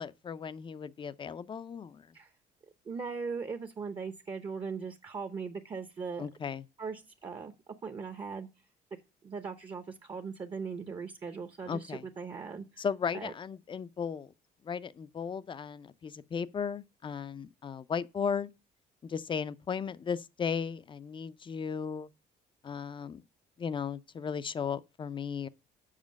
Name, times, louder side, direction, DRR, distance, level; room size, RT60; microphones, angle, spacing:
voice 1, 0.0-2.1 6.2-6.6 11.7-12.0 12.8-14.3 14.6-18.5 19.0-22.1 22.6-23.2 23.6-25.5, left 6 dB, 30° left, 0.5 m, -36 dB
voice 2, 2.8-6.3 6.8-8.5 9.2-12.8 13.1-13.3, right 5 dB, 30° right, 0.8 m, -39 dB
7.5 x 5.0 x 6.3 m
cardioid pair, 110°, 17 cm